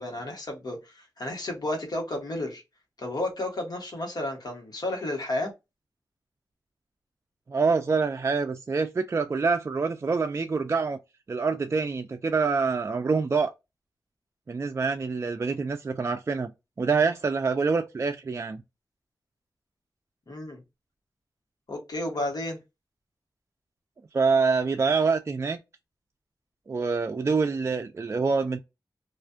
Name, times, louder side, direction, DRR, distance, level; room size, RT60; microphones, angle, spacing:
voice 1, 0.0-2.6 3.0-5.5 20.3-20.6 21.7-22.6, left 1 dB, 65° left, 1.1 m, -32 dB
voice 2, 7.5-11.0 11.3-13.5 14.5-16.5 16.8-18.6 24.1-25.6 26.7-28.6, right 4 dB, 40° right, 0.3 m, -26 dB
2.4 x 2.2 x 2.6 m
wide cardioid pair, 75°, 7 cm